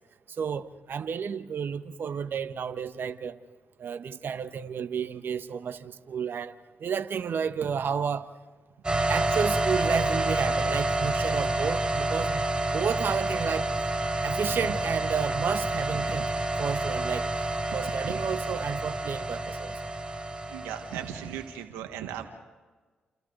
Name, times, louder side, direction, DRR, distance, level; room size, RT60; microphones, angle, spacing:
voice 1, 0.4-3.4 3.8-6.5 6.8-8.3 9.1-12.5 12.7-13.7 14.2-16.3 16.6-17.3 17.7-19.8, right 7 dB, 65° right, 1.3 m, -31 dB
sound 1, 8.8-21.4, right 2 dB, 20° right, 5.3 m, -29 dB
voice 2, 20.5-22.3, right 10 dB, 90° right, 1.6 m, -37 dB
29.5 x 28.5 x 4.0 m
hypercardioid pair, 45°, 4 cm